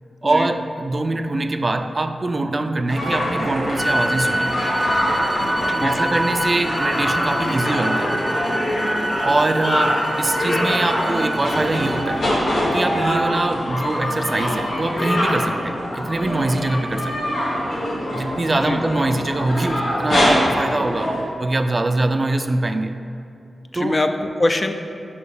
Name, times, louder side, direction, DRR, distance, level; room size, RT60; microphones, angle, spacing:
voice 1, 0.2-4.5 5.8-8.2 9.2-12.3 12.7-17.3 18.1-21.1 21.4-23.0 23.7-24.0, right 2 dB, 40° right, 8 dB, 0.3 m, -23 dB
sound 1, 2.9-21.2, equal, 80° left, 1.4 m, -23 dB
sound 2, 3.0-9.8, right 2 dB, 80° right, 0.6 m, -37 dB
sound 3, 3.8-12.1, right 1 dB, 10° left, 1.0 m, -27 dB
voice 2, 5.7-6.2 18.6-18.8 23.7-24.7, left 2 dB, 40° left, 6 dB, 0.4 m, -23 dB
5.0 x 4.8 x 5.0 m, 2.6 s
cardioid pair, 45°, 0 cm